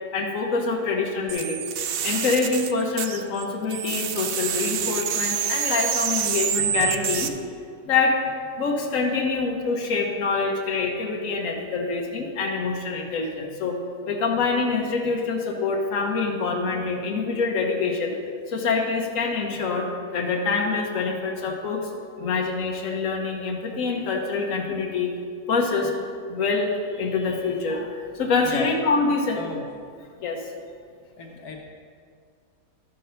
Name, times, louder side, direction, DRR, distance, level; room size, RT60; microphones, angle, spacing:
voice 1, 0.1-1.6 2.0-7.4 7.8-8.2 8.6-13.8 14.1-18.2 18.5-21.9 22.2-25.1 25.5-26.0 26.3-29.4 30.2-30.5, left 4 dB, 65° left, 0 dB, 1.4 m, -25 dB
sound 1, 1.3-3.4 3.7-7.3, right 8 dB, 90° right, 0.5 m, -27 dB
voice 2, 29.3-29.7 31.2-31.6, left 3 dB, 85° left, 0 dB, 1.5 m, -34 dB
12.0 x 5.4 x 5.6 m, 2.2 s
omnidirectional pair, 1.6 m